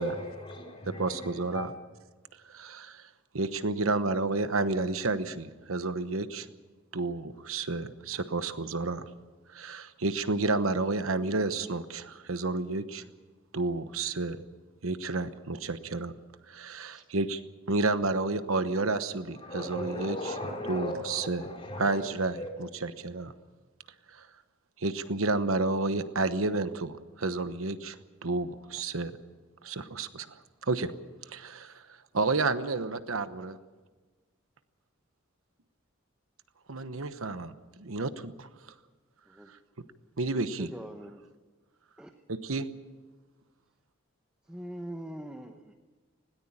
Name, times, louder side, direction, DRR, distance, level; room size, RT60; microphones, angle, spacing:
voice 1, 0.0-1.7 19.3-22.5, left 1 dB, 25° left, 4.7 m, -37 dB
voice 2, 0.9-1.7 2.5-3.1 3.3-6.5 6.9-9.1 9.5-13.0 13.5-14.4 14.8-16.1 16.5-17.4 17.7-20.2 20.7-21.4 21.8-23.3 24.1-24.3 24.8-29.1 29.6-30.4 30.6-30.9 31.3-31.8 32.1-33.6 36.7-38.5 40.2-40.7 42.3-42.7, right 3 dB, 85° right, 1.1 m, -31 dB
voice 3, 40.3-41.2 42.0-42.1 44.5-45.7, right 1 dB, 5° right, 0.9 m, -42 dB
20.5 x 18.0 x 8.8 m
head